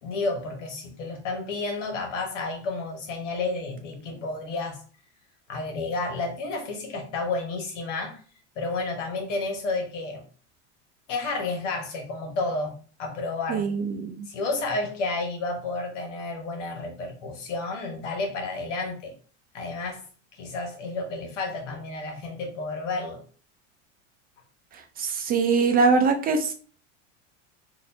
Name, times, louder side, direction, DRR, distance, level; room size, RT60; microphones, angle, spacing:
voice 1, 0.0-4.8 5.5-8.2 8.6-10.2 11.1-12.7 13.0-13.7 14.3-19.1 19.5-20.0 20.4-23.2, left 3 dB, 85° left, 3 dB, 1.3 m, -31 dB
voice 2, 13.5-14.3 25.0-26.5, right 4 dB, 25° right, 5 dB, 0.4 m, -23 dB
4.1 x 2.6 x 2.7 m, 0.41 s
supercardioid pair, 125°, 36 cm